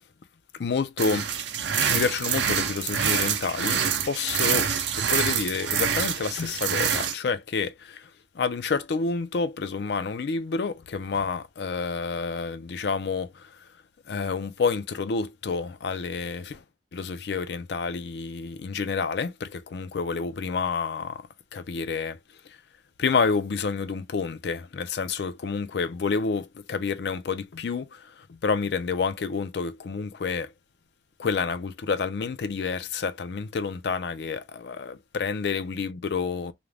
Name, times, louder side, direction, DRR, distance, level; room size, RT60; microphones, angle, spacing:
voice 1, 0.6-1.3 1.9-4.7 5.0-8.0 8.4-13.3 14.1-16.6 16.9-21.2 21.5-22.2 23.0-28.0 28.4-30.5 31.2-36.5, left 5 dB, 65° left, 0.4 m, -29 dB
sound 1, 1.0-7.1, right 7 dB, 75° right, 0.5 m, -26 dB
2.5 x 2.1 x 3.1 m
head